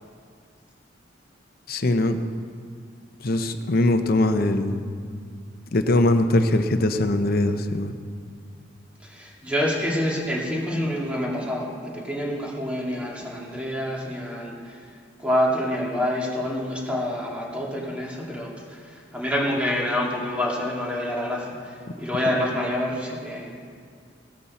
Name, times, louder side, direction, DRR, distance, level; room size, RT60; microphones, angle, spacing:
voice 1, 1.7-2.2 3.2-4.8 5.7-7.9, left 2 dB, 50° left, 8 dB, 0.8 m, -21 dB
voice 2, 9.0-14.8 15.2-23.5, left 1 dB, 5° right, -4 dB, 2.3 m, -27 dB
16.0 x 13.0 x 4.2 m, 2.1 s
head